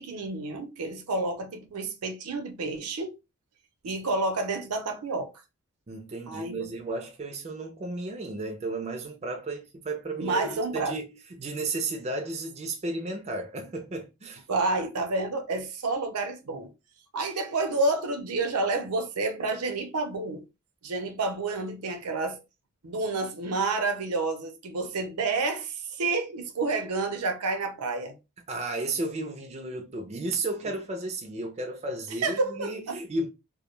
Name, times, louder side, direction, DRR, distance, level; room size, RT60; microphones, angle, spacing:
voice 1, 0.0-3.1 3.8-5.3 6.3-6.7 10.2-10.9 14.5-16.7 17.1-20.4 20.8-22.4 22.8-28.2 32.2-33.0, right 3 dB, 85° right, 0.6 m, -29 dB
voice 2, 5.9-14.4 28.5-33.3, right 2 dB, 30° right, 0.4 m, -33 dB
2.2 x 2.1 x 3.0 m
head